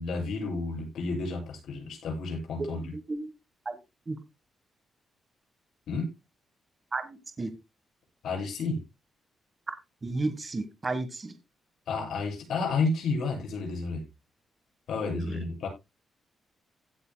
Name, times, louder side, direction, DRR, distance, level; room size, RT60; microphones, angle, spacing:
voice 1, 0.0-2.8 5.9-6.1 8.2-8.8 11.9-14.0 14.9-15.7, left 3 dB, 65° left, 0 dB, 7.4 m, -31 dB
voice 2, 2.6-3.3 3.6-3.8 4.1-4.2 6.9-7.5 10.0-11.3 15.0-15.4, right 2 dB, 20° right, 8 dB, 1.4 m, -33 dB
16.5 x 8.1 x 2.2 m, 0.24 s
wide cardioid pair, 180°, 0 cm